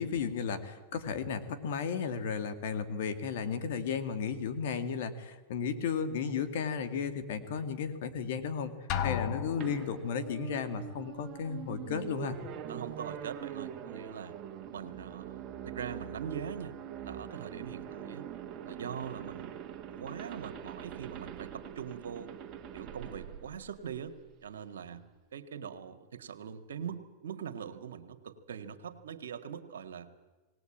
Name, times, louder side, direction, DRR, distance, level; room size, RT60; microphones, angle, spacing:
voice 1, 0.0-8.7 9.0-12.4, left 6 dB, 70° left, 11 dB, 2.3 m, -34 dB
Drum, 8.9-10.1, left 9 dB, 45° left, 1.3 m, -34 dB
sound 1, 9.6-24.3, right 9 dB, 35° right, 1.9 m, -44 dB
voice 2, 12.7-14.4 14.7-16.8 17.0-18.2 18.6-19.6 19.9-22.3 22.7-25.0 25.3-30.1, right 8 dB, 85° right, 9 dB, 1.7 m, -42 dB
19.0 x 19.0 x 8.8 m, 1.2 s
hypercardioid pair, 120°, 0 cm